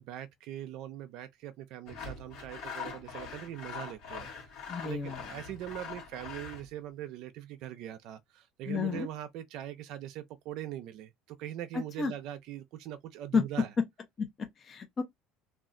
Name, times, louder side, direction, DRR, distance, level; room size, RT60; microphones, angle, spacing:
voice 1, 0.0-4.5 4.8-13.7, right 12 dB, 60° right, 0.4 m, -42 dB
Sawing, 1.9-6.7, left 5 dB, 60° left, 1.1 m, -43 dB
voice 2, 4.7-5.2 8.7-9.1 11.7-12.1 13.3-13.4 14.2-15.0, left 5 dB, 30° left, 0.6 m, -31 dB
2.4 x 2.0 x 3.6 m
cardioid pair, 145°, 0 cm